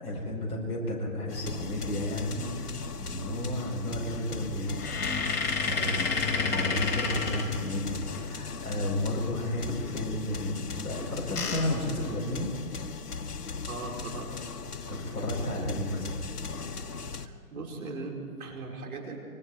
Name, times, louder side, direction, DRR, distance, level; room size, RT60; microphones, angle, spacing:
voice 1, 0.0-4.8 5.6-12.5 14.9-16.1, left 1 dB, 10° left, -4 dB, 5.2 m, -33 dB
sound 1, 1.3-17.3, left 5 dB, 80° left, 1.4 m, -38 dB
sound 2, 4.7-8.2 10.9-12.8 13.3-13.4 13.7-13.9 15.4-15.7 16.3-16.8, left 4 dB, 30° left, 4.5 m, -31 dB
voice 2, 5.7-6.1 13.7-14.4 17.0-19.2, right 3 dB, 65° right, 0 dB, 5.2 m, -39 dB
26.5 x 24.5 x 4.8 m, 2.5 s
hypercardioid pair, 140°, 46 cm